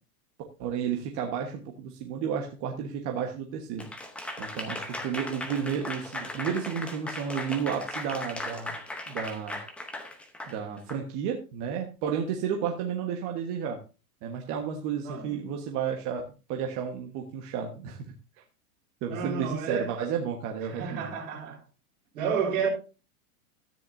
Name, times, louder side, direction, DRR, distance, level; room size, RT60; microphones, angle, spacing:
voice 1, 0.6-3.9 4.4-8.7 9.1-9.6 10.5-13.8 14.2-16.2 16.5-18.0 19.0-21.1, right 7 dB, 30° right, 1.4 m, -32 dB
Applause / Crowd, 3.8-11.0, left 1 dB, 5° left, 0.8 m, -37 dB
voice 2, 19.1-20.0 20.7-21.6 22.1-22.7, right 6 dB, 55° right, 5.5 m, -30 dB
13.5 x 9.9 x 2.7 m
supercardioid pair, 165°, 47 cm